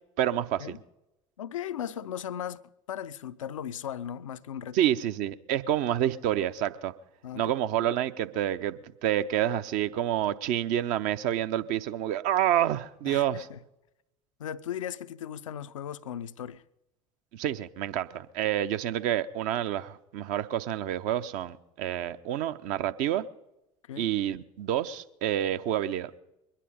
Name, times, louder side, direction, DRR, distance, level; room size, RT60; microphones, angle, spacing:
voice 1, 0.2-0.8 4.7-6.9 7.3-13.5 17.3-23.2 24.0-26.1, right 11 dB, 50° right, 0.7 m, -28 dB
voice 2, 1.4-2.6 2.9-4.8 7.2-7.5 7.8-7.9 13.1-13.6 14.4-16.6 23.9-24.1, left 9 dB, 70° left, 0.5 m, -37 dB
22.5 x 10.0 x 5.1 m
figure-of-eight pair, 65°, 17 cm